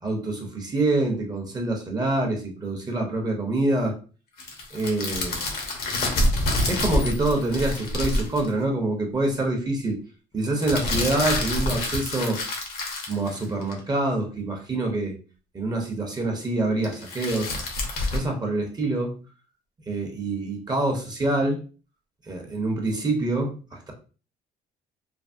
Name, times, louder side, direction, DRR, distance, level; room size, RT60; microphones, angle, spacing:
voice 1, 0.0-4.0 4.7-5.4 6.7-10.0 10.3-12.4 13.1-15.2 15.5-17.5 18.1-19.2 19.9-21.6 22.2-23.9, right 2 dB, 25° right, 2 dB, 0.7 m, -26 dB
sound 1, 4.4-8.5 10.6-13.8 16.8-18.2, left 1 dB, 65° left, 0.9 m, -27 dB
sound 2, 6.8-8.0 9.1-9.3 10.0-10.1 10.3-10.7, left 3 dB, 30° left, 0.6 m, -42 dB
3.3 x 2.0 x 2.5 m, 0.36 s
cardioid pair, 110°, 17 cm